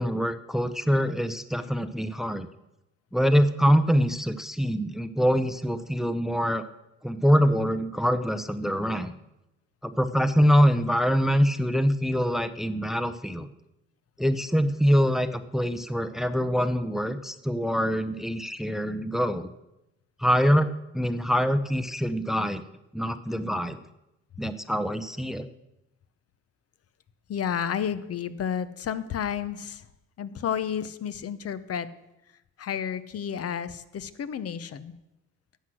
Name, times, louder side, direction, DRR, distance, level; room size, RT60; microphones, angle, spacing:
voice 1, 0.0-2.5 3.1-6.6 7.0-9.1 9.8-13.5 14.2-19.5 20.2-20.7 20.9-22.6 22.9-23.8 24.4-25.4, equal, ahead, 11 dB, 0.6 m, -24 dB
voice 2, 27.3-29.9 30.2-31.9 32.6-34.9, left 8 dB, 50° left, 14 dB, 0.8 m, -31 dB
12.0 x 7.9 x 6.2 m, 0.92 s
cardioid pair, 90°, 30 cm